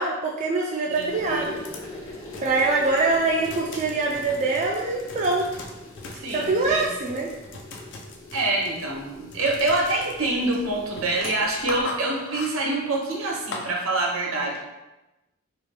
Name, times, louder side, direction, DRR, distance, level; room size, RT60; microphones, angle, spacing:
voice 1, 0.0-1.6 2.4-5.5 6.3-7.3, right 3 dB, 35° right, -2 dB, 0.4 m, -24 dB
sound 1, 0.9-13.7, left 3 dB, 60° left, 0.5 m, -41 dB
voice 2, 0.9-1.6 6.1-6.8 8.3-14.6, right 2 dB, 75° right, -2 dB, 1.0 m, -26 dB
sound 2, 1.1-11.8, left 1 dB, 75° left, 1.1 m, -42 dB
4.9 x 2.2 x 3.2 m, 1.0 s
head